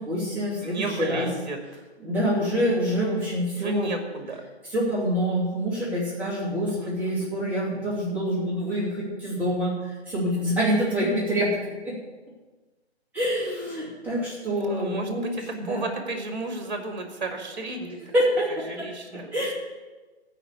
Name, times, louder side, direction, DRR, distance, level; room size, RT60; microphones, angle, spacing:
voice 1, 0.0-1.3 2.0-3.9 4.7-11.5 11.8-12.0 13.1-15.8 18.1-18.9 19.3-19.5, equal, 5° right, -9 dB, 2.7 m, -26 dB
voice 2, 0.6-1.6 3.6-4.4 6.7-7.3 14.6-18.0 18.7-19.3, right 2 dB, 40° right, 4 dB, 2.2 m, -33 dB
15.0 x 5.0 x 8.5 m, 1.2 s
figure-of-eight pair, 140°, 34 cm